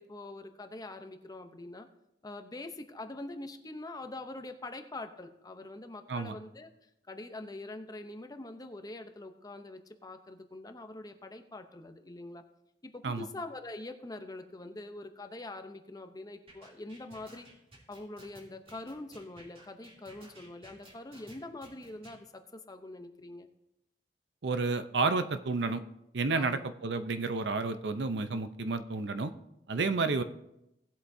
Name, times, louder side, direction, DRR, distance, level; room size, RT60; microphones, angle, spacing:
voice 1, 0.0-1.9 2.2-6.7 7.1-12.4 12.8-17.5 17.9-23.5 26.3-26.7, left 2 dB, 20° left, 7 dB, 0.7 m, -44 dB
sound 1, 16.5-22.2, right 1 dB, 35° right, 2.8 m, -54 dB
voice 2, 24.4-25.8 26.1-29.3 29.7-30.2, right 3 dB, 75° right, 11 dB, 0.6 m, -31 dB
18.0 x 8.0 x 2.7 m, 0.86 s
head